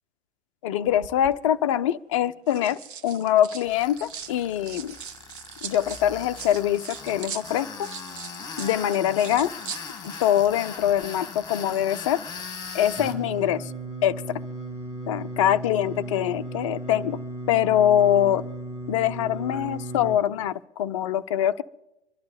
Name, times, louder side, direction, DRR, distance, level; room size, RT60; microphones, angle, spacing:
voice 1, 0.6-5.0 5.6-7.9 8.6-9.5 10.0-12.2 12.7-13.7 14.0-14.1 15.1-17.2 17.5-18.4 18.9-21.6, left 11 dB, 30° left, 11 dB, 0.4 m, -23 dB
sound 1, 0.9-1.4 2.2-4.3 4.6-10.5 10.8-11.1, right 8 dB, 50° right, 1.0 m, -41 dB
Tools, 3.6-13.2, left 5 dB, 10° left, 1.7 m, -40 dB
Singing, 12.9-20.2, right 2 dB, 10° right, 2.8 m, -35 dB
25.5 x 11.5 x 4.0 m, 0.96 s
figure-of-eight pair, 105°, 34 cm